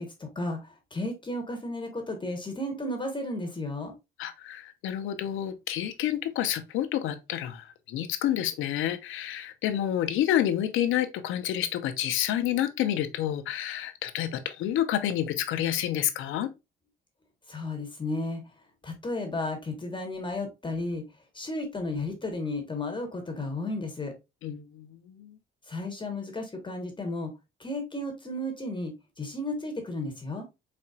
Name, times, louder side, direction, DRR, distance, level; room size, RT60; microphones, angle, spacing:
voice 1, 0.0-3.9 17.5-18.4 18.8-21.0 21.3-24.1 25.7-27.3 27.6-30.4, left 2 dB, 25° left, 1.3 m, -33 dB
voice 2, 4.2-16.5 24.4-25.3, left 11 dB, 90° left, 0.7 m, -29 dB
4.2 x 4.2 x 2.4 m
cardioid pair, 90°, 20 cm